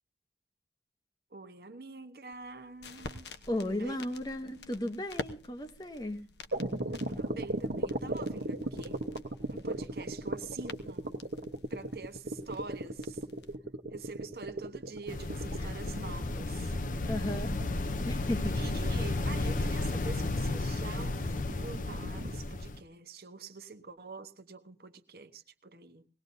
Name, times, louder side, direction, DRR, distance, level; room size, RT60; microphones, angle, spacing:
voice 1, 1.3-3.3 3.6-4.0 7.2-9.0 9.5-11.1 11.7-13.2 13.9-16.7 18.5-26.1, right 4 dB, 60° right, 1.0 m, -46 dB
sound 1, 2.3-13.6, left 3 dB, 75° left, 1.0 m, -49 dB
voice 2, 3.5-6.2 15.6-15.7 17.1-17.5 18.0-18.6, left 1 dB, 25° left, 0.9 m, -35 dB
sound 2, 6.5-22.4, right 1 dB, 80° right, 1.1 m, -37 dB
sound 3, 15.1-22.8, left 2 dB, 50° left, 0.6 m, -33 dB
20.5 x 18.0 x 2.7 m
head